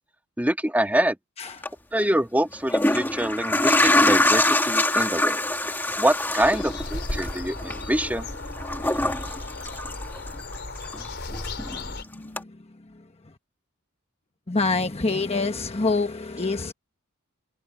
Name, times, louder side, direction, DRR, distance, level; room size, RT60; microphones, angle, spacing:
voice 1, 0.4-1.2 1.9-5.4 6.0-8.3, right 1 dB, 10° right, 2.1 m, -25 dB
voice 2, 1.4-1.7 12.0-13.3 14.5-16.7, left 3 dB, 30° left, 1.1 m, -27 dB
sound 1, 1.5-1.7 2.5-10.6 10.9-11.9 12.4-12.5, left 1 dB, 10° left, 1.8 m, -24 dB
sound 2, 6.4-12.0, left 2 dB, 50° left, 4.6 m, -35 dB
open air
head